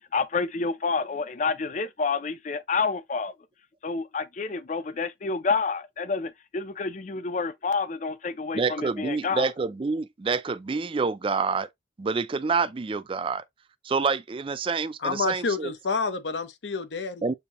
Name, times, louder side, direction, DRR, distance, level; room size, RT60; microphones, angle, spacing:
voice 1, 0.1-3.3 3.8-9.5, left 4 dB, 45° left, 0.5 m, -29 dB
voice 2, 8.5-11.7 12.0-13.4 13.8-15.7 17.2-17.3, right 4 dB, 30° right, 0.4 m, -27 dB
voice 3, 15.0-17.2, left 4 dB, 90° left, 0.8 m, -29 dB
6.8 x 2.7 x 2.9 m
head